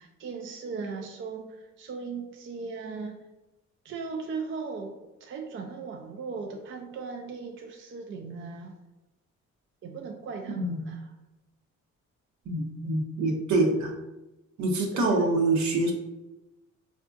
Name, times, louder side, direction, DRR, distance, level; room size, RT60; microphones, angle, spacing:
voice 1, 0.0-3.2 3.8-8.8 9.8-11.1 14.9-15.3, right 4 dB, 40° right, 3 dB, 0.4 m, -38 dB
voice 2, 10.6-10.9 12.5-13.9 14.6-15.9, right 2 dB, 70° right, 1 dB, 0.8 m, -25 dB
4.2 x 2.5 x 2.4 m, 1.0 s
cardioid pair, 90°, 30 cm